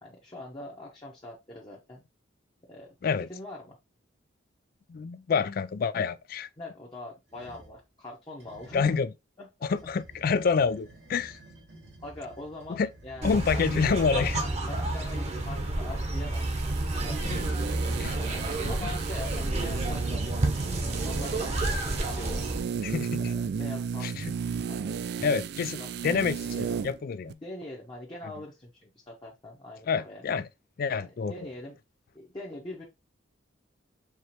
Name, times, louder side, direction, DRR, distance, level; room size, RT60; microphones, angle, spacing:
voice 1, 0.0-2.0 2.7-3.8 6.6-8.9 9.4-9.5 12.0-13.6 14.7-17.5 18.1-22.4 23.2-24.1 24.7-25.0 25.8-26.8 27.4-30.2 30.9-31.8 32.1-32.8, left 1 dB, 25° left, 0.9 m, -43 dB
voice 2, 4.9-6.5 8.7-9.1 9.6-11.4 12.7-12.9 13.2-14.4 18.0-18.2 18.6-18.9 22.8-23.2 24.0-24.3 25.2-27.4 29.9-30.5 30.8-31.5, left 5 dB, 50° left, 0.3 m, -28 dB
sound 1, 7.3-7.8 8.4-9.0 9.6-21.6, right 1 dB, 90° right, 1.9 m, -50 dB
sound 2, 13.2-22.6, right 2 dB, 35° right, 0.9 m, -30 dB
sound 3, 16.3-27.0 27.3-27.4, right 6 dB, 60° right, 0.3 m, -35 dB
4.8 x 3.1 x 2.9 m
head